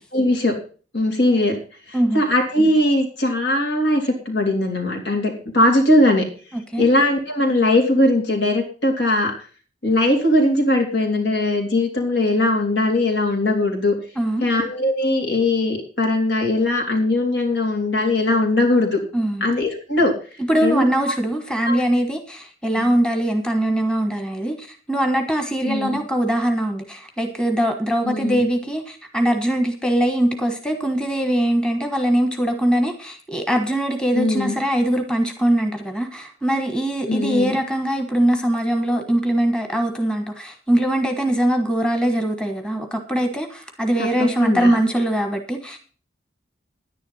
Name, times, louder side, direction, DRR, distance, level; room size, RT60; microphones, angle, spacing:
voice 1, 0.1-0.6 0.9-1.6 1.9-6.3 6.8-9.3 9.8-14.0 14.4-19.0 19.4-20.1 20.6-20.9 21.6-21.8 22.8-22.9 25.6-26.0 28.0-28.5 34.1-34.6 37.1-37.6 44.0-44.7, left 1 dB, 75° left, 1 dB, 3.6 m, -20 dB
voice 2, 19.1-19.4 20.5-45.8, right 1 dB, 5° left, 5 dB, 1.3 m, -22 dB
10.5 x 10.0 x 5.6 m, 0.39 s
head